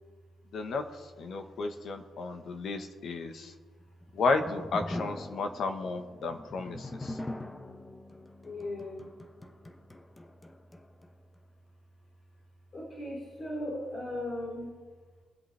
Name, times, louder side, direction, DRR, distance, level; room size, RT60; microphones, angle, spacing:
voice 1, 0.5-3.5 4.1-7.2, left 3 dB, 60° left, 6 dB, 1.3 m, -33 dB
sound 1, 3.9-11.1, left 1 dB, 15° left, 0.9 m, -42 dB
voice 2, 8.4-9.1 12.7-14.7, left 1 dB, 45° left, -3 dB, 4.1 m, -37 dB
22.0 x 8.0 x 3.4 m, 1.4 s
cardioid pair, 90°, 0 cm